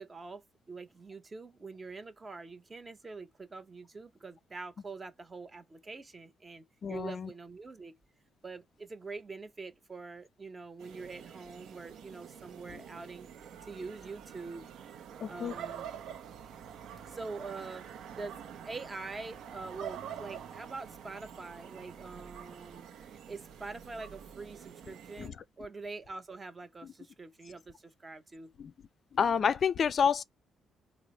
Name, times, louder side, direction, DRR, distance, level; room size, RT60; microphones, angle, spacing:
voice 1, 0.0-8.0 8.4-13.3 13.6-14.7 15.3-15.9 17.0-18.4 18.6-22.9 23.3-28.5, right 3 dB, 30° right, 0.8 m, -44 dB
voice 2, 6.8-7.1 15.2-15.5 25.2-25.3 28.6-28.7 29.1-30.2, left 7 dB, 50° left, 0.3 m, -28 dB
sound 1, 10.8-25.3, right 8 dB, 75° right, 0.6 m, -47 dB
3.8 x 2.0 x 3.0 m
cardioid pair, 90°, 0 cm